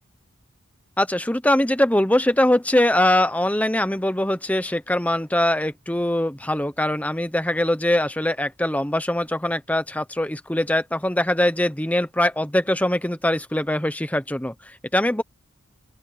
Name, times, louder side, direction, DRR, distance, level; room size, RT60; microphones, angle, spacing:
voice 1, 1.0-15.2, left 1 dB, 5° left, 0.9 m, -22 dB
open air
head